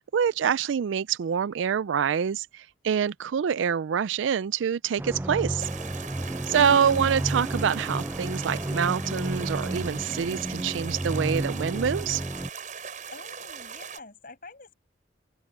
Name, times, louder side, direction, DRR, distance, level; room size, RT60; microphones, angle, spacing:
voice 1, 0.0-5.7 6.5-12.2, right 7 dB, 90° right, 0.4 m, -26 dB
sound 1, 5.0-12.5, right 1 dB, 10° right, 0.4 m, -31 dB
sound 2, 5.6-14.0, right 6 dB, 45° right, 8.0 m, -40 dB
voice 2, 13.1-14.7, left 3 dB, 50° left, 6.2 m, -47 dB
head